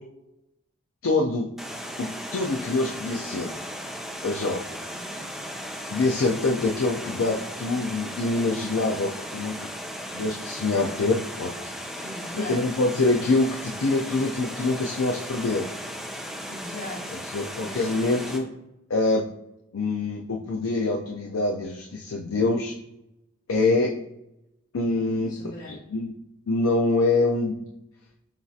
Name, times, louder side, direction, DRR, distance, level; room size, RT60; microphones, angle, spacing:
voice 1, 1.0-1.5 2.0-3.5 4.2-4.6 5.9-9.7 10.1-15.7 17.3-18.5 18.9-19.3 19.7-22.7 23.5-23.9 24.7-25.3 25.7-26.1 26.5-27.6, left 2 dB, 85° left, 0 dB, 0.5 m, -25 dB
Water, 1.6-18.4, equal, ahead, 0.5 m, -36 dB
voice 2, 4.9-5.3 12.0-12.8 16.4-17.3 17.6-17.9 25.3-25.8, left 2 dB, 45° left, -9 dB, 1.3 m, -40 dB
7.1 x 2.4 x 2.7 m, 0.88 s
head